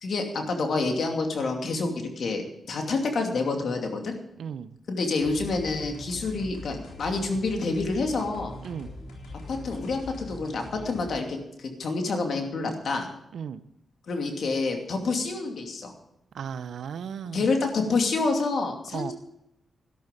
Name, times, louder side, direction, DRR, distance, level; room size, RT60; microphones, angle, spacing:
voice 1, 0.0-4.1 4.9-8.6 9.5-13.1 14.1-15.9 17.3-19.1, left 3 dB, 70° left, 3 dB, 2.6 m, -28 dB
voice 2, 4.4-4.7 8.6-8.9 13.3-13.6 16.3-17.5 18.9-19.1, right 7 dB, 80° right, 15 dB, 0.6 m, -35 dB
sound 1, 5.2-11.2, left 2 dB, 90° left, 3.5 m, -42 dB
12.5 x 12.0 x 5.2 m, 0.82 s
cardioid pair, 50°, 0 cm